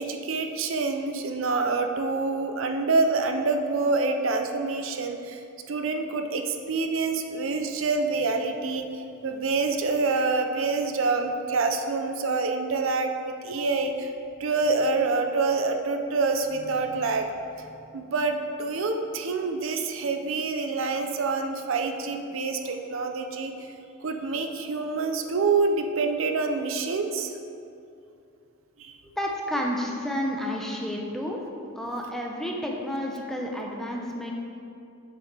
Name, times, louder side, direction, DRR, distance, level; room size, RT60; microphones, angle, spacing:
voice 1, 0.0-5.4 5.7-8.9 9.2-14.1 14.4-17.3 17.9-23.5 24.0-27.3 28.8-28.9, right 3 dB, 70° right, 5 dB, 0.5 m, -26 dB
voice 2, 29.2-31.4 31.7-34.3, equal, ahead, -1 dB, 0.6 m, -30 dB
7.5 x 6.7 x 3.3 m, 2.5 s
head